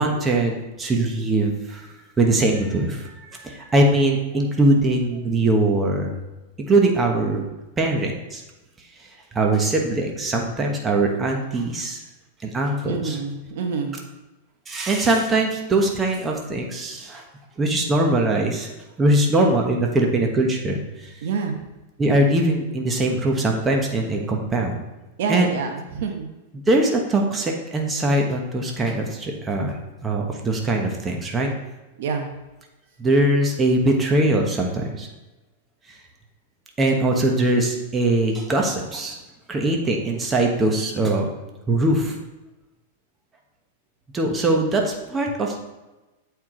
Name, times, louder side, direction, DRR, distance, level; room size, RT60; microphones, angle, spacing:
voice 1, 0.0-1.9 2.2-6.2 6.7-7.4 7.8-8.4 9.3-12.0 12.4-13.2 14.7-17.2 17.6-18.7 19.0-21.1 22.0-24.8 25.3-25.5 26.5-29.8 30.0-31.5 33.0-35.1 36.8-39.2 39.5-41.3 41.7-42.2 44.1-45.6, right 2 dB, 15° right, 1 dB, 1.2 m, -21 dB
voice 2, 12.8-14.0 21.2-21.5 25.2-26.3 32.0-32.3 40.0-40.1, right 5 dB, 65° right, 4 dB, 1.0 m, -27 dB
8.2 x 4.7 x 3.9 m, 1.1 s
hypercardioid pair, 130°, 0 cm